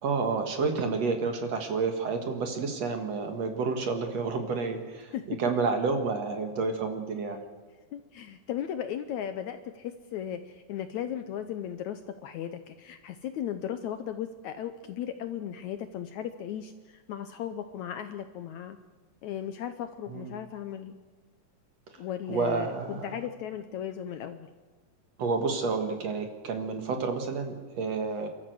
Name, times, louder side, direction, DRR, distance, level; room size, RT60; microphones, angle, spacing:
voice 1, 0.0-7.4 20.1-20.3 21.9-22.0 22.3-23.2 25.2-28.3, right 4 dB, 55° right, 5 dB, 2.7 m, -30 dB
voice 2, 7.9-18.8 19.2-21.0 22.0-24.5, left 10 dB, 70° left, 9 dB, 1.9 m, -36 dB
28.5 x 13.0 x 7.8 m, 1.5 s
omnidirectional pair, 4.0 m